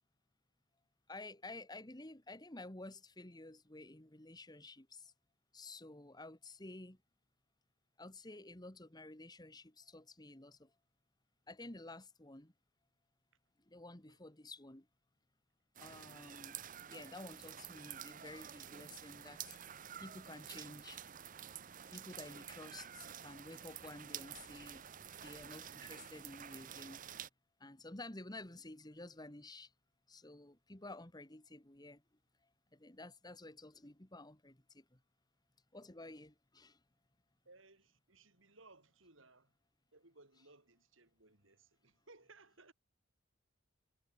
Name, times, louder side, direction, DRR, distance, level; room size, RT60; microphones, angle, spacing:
voice 1, 1.1-5.1 5.5-7.0 8.0-10.7 11.5-12.5 13.7-14.9 15.8-16.6 16.8-21.0 21.9-24.8 25.2-27.0 27.6-29.7 30.1-32.0 32.7-35.0 35.7-36.8, left 2 dB, 20° left, 1.7 m, -52 dB
sound 1, 15.8-27.3, right 9 dB, 40° right, 0.8 m, -50 dB
voice 2, 37.4-39.5 39.9-42.7, right 3 dB, 65° right, 4.8 m, -63 dB
head